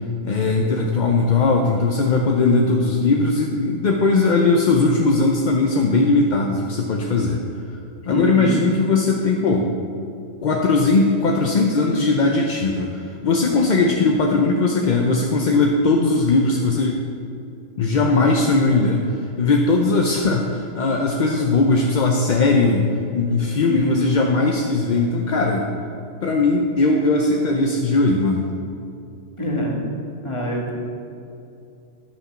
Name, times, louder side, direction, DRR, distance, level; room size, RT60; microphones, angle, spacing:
voice 1, 0.2-7.4 8.0-9.7 10.4-17.0 17.8-22.8 23.1-25.7 26.2-28.5, left 3 dB, 50° left, 1 dB, 0.6 m, -19 dB
voice 2, 8.1-8.6 23.7-24.1 29.4-29.8 30.2-30.7, equal, 25° left, -2 dB, 1.6 m, -25 dB
10.0 x 5.8 x 6.2 m, 2.6 s
omnidirectional pair, 1.3 m